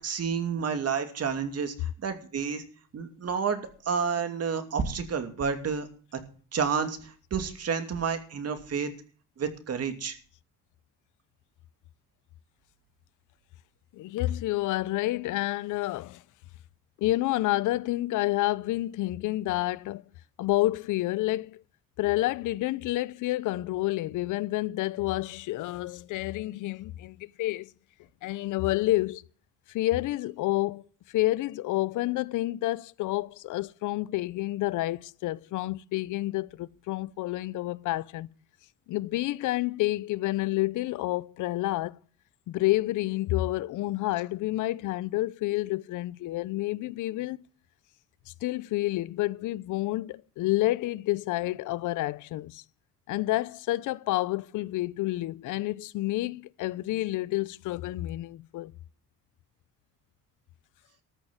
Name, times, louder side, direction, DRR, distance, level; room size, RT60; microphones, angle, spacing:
voice 1, 0.0-2.6 2.9-5.9 6.1-6.2 6.5-8.9 9.4-10.2, right 6 dB, 55° right, 2.6 m, -30 dB
voice 2, 13.9-16.2 17.0-20.1 20.4-21.6 22.0-27.7 28.2-29.3 29.7-30.8 31.1-38.3 38.9-42.0 42.5-47.5 48.4-52.6 53.1-58.7, left 17 dB, 85° left, 0.6 m, -29 dB
13.5 x 6.4 x 9.4 m
cardioid pair, 90°, 30 cm